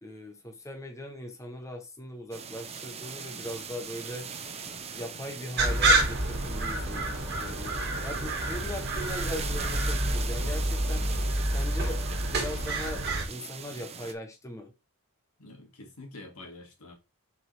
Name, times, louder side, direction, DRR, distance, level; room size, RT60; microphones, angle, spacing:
voice 1, 0.0-4.3 4.9-11.1 11.5-12.0 12.3-14.7, left 1 dB, 15° left, 0.8 m, -40 dB
sound 1, 2.3-14.1, right 6 dB, 30° right, 0.8 m, -41 dB
sound 2, 5.6-13.2, right 2 dB, 50° right, 1.7 m, -28 dB
voice 2, 15.4-16.9, left 2 dB, 75° left, 2.3 m, -46 dB
6.8 x 4.7 x 3.3 m
head